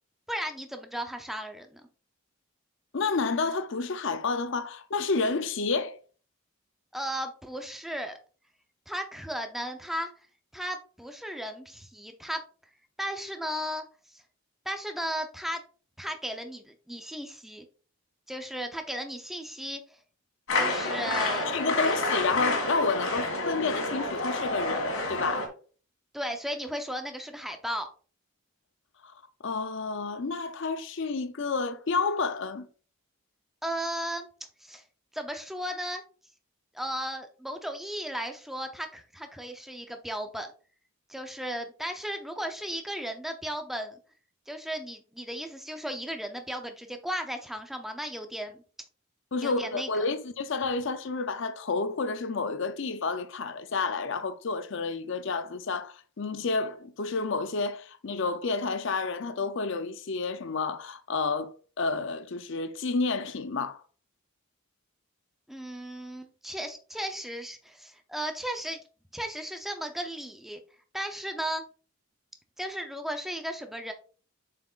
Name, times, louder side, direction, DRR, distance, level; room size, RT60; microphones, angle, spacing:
voice 1, 0.3-1.8 6.9-8.2 8.9-10.1 10.5-12.4 13.0-13.8 14.1-14.2 14.7-15.6 16.0-17.7 18.3-20.0 20.6-21.5 21.8-21.9 26.1-27.9 33.6-34.3 34.6-34.8 35.1-36.0 36.7-40.5 41.1-44.0 44.5-48.6 49.4-50.0 65.5-68.8 69.1-70.6 70.9-71.6 72.6-73.9, equal, ahead, 0.6 m, -35 dB
voice 2, 2.9-6.0 21.4-25.5 29.0-29.1 29.4-32.7 49.3-63.8, left 4 dB, 55° left, 0.6 m, -30 dB
sound 1, 20.5-25.5, left 2 dB, 70° left, 2.0 m, -29 dB
7.5 x 5.8 x 2.4 m
head